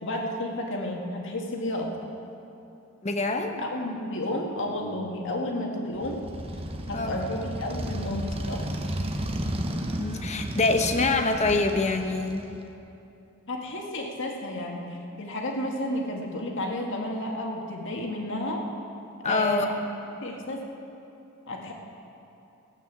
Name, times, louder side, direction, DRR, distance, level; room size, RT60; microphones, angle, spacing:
voice 1, 0.0-1.9 3.6-6.2 6.9-8.7 11.0-11.3 13.5-18.6 19.2-19.8 20.2-20.6 21.5-21.7, left 1 dB, 60° left, 0 dB, 1.9 m, -31 dB
voice 2, 3.0-3.6 6.9-7.2 10.0-12.5 19.2-19.7, left 3 dB, 35° left, 5 dB, 0.9 m, -25 dB
Motorcycle, 6.0-12.7, right 1 dB, 25° right, 0.9 m, -33 dB
15.5 x 9.0 x 7.5 m, 2.8 s
head